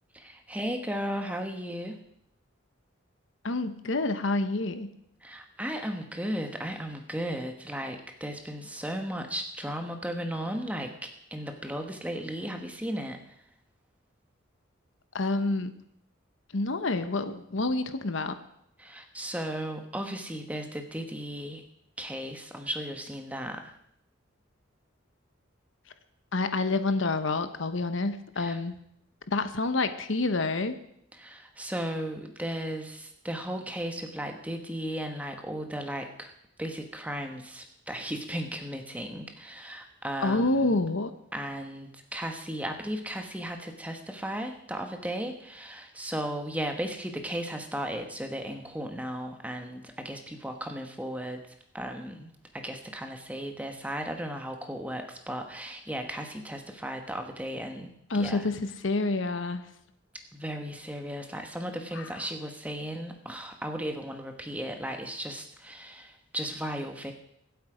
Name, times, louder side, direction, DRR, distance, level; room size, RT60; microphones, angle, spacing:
voice 1, 0.1-2.0 5.2-13.2 18.8-21.6 22.0-23.7 28.4-28.6 31.1-36.3 36.6-40.8 41.3-51.4 51.7-58.5 60.3-67.1, equal, 5° right, 5 dB, 1.2 m, -35 dB
voice 2, 3.4-4.9 15.1-15.7 16.5-18.4 26.3-28.7 29.3-30.8 40.2-41.1 58.1-59.6 61.9-62.1, left 2 dB, 70° left, 10 dB, 1.0 m, -28 dB
24.0 x 8.1 x 5.0 m, 0.74 s
head